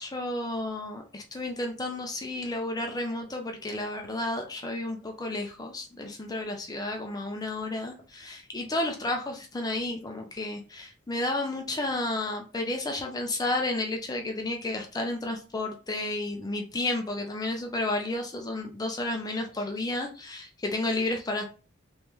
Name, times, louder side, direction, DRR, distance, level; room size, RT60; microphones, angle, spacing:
voice 1, 0.0-21.4, left 2 dB, 20° left, 3 dB, 0.5 m, -32 dB
3.1 x 3.1 x 3.4 m, 0.35 s
head